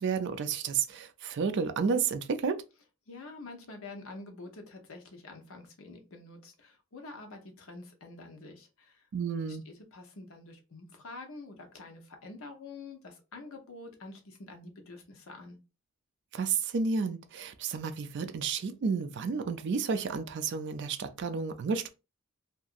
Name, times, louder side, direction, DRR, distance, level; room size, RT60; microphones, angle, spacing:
voice 1, 0.0-2.6 9.1-9.6 16.3-21.9, right 5 dB, 55° right, 0.4 m, -31 dB
voice 2, 3.1-9.1 9.5-15.6, left 3 dB, 65° left, 0.8 m, -47 dB
2.8 x 2.5 x 2.4 m
head